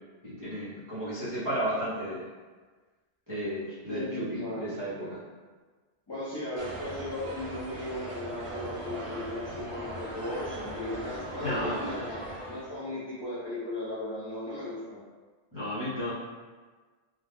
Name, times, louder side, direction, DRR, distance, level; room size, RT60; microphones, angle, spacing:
voice 1, 0.2-2.2 3.3-5.2 11.4-12.0 15.5-16.1, equal, 20° right, -13 dB, 0.8 m, -33 dB
voice 2, 3.8-4.7 6.1-15.0, left 1 dB, 30° left, -11 dB, 0.5 m, -36 dB
sound 1, 6.6-12.8, right 1 dB, 45° right, 0.4 m, -39 dB
2.3 x 2.3 x 3.4 m, 1.4 s
omnidirectional pair, 1.1 m